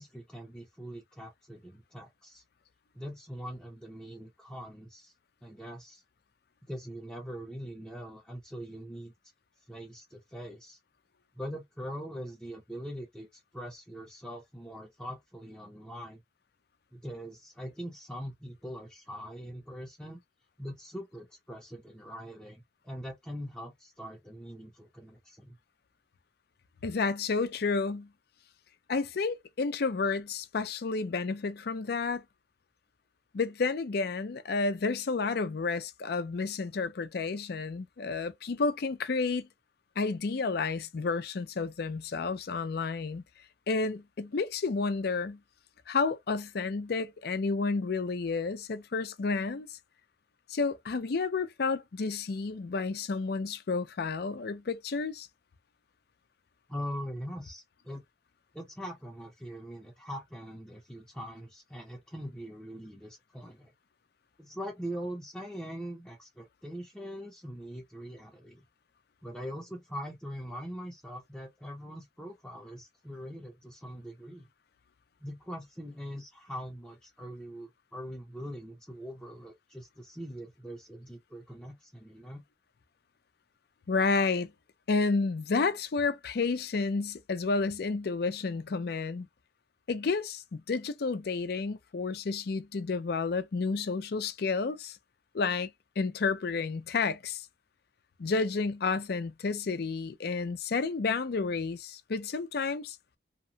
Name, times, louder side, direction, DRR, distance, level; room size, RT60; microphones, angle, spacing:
voice 1, 0.0-2.4 2.9-5.1 5.4-6.0 6.7-9.1 9.7-10.8 11.4-16.2 16.9-20.2 20.6-25.6 56.7-58.0 58.5-63.7 64.4-68.6 69.2-74.5 75.2-82.4, equal, 5° left, 0.6 m, -42 dB
voice 2, 26.8-28.1 28.9-32.2 33.3-39.5 40.0-43.2 43.7-45.4 45.9-49.8 50.5-55.3 83.9-84.5 84.9-89.3 89.9-95.0 95.3-95.7 96.0-97.5 98.2-103.0, left 4 dB, 60° left, 0.5 m, -31 dB
2.9 x 2.1 x 2.6 m
head